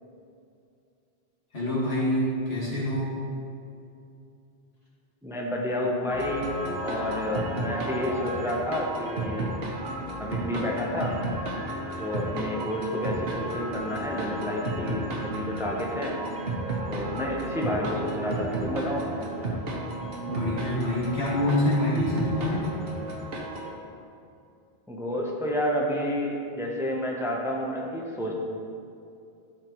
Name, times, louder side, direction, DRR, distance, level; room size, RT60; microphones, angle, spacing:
voice 1, 1.5-3.2 20.3-22.7, left 1 dB, 85° left, -7 dB, 2.2 m, -26 dB
voice 2, 5.2-6.5 6.8-9.5 10.2-11.2 12.0-16.2 16.9-19.3 24.9-28.3, left 1 dB, 5° right, -1 dB, 0.7 m, -30 dB
sound 1, 6.1-23.7, right 1 dB, 70° right, 1.2 m, -32 dB
11.5 x 5.0 x 3.1 m, 2.5 s
omnidirectional pair, 1.0 m